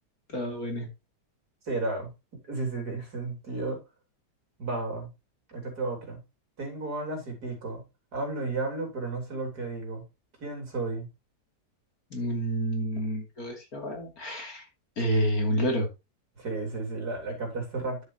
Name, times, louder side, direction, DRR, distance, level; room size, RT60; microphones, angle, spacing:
voice 1, 0.3-0.9 12.1-14.7 15.0-15.9, equal, 60° left, 2 dB, 3.3 m, -29 dB
voice 2, 1.6-2.1 2.5-3.8 4.6-5.1 5.5-6.2 6.6-7.8 8.1-10.0 10.4-11.1 16.4-18.1, right 3 dB, 65° right, 3 dB, 4.2 m, -33 dB
10.0 x 8.2 x 2.9 m, 0.25 s
omnidirectional pair, 1.8 m